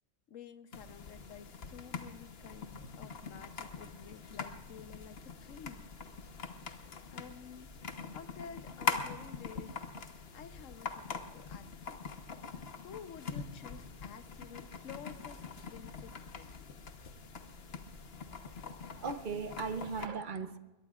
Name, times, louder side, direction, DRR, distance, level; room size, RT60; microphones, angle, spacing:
voice 1, 0.3-5.9 7.1-10.0 10.3-12.1 12.4-16.5, left 7 dB, 75° left, 11 dB, 1.2 m, -51 dB
sound 1, 0.7-20.1, left 5 dB, 55° left, 1.2 m, -43 dB
voice 2, 18.9-20.6, right 5 dB, 45° right, 10 dB, 0.8 m, -38 dB
22.5 x 21.0 x 2.4 m, 1.2 s
omnidirectional pair, 1.3 m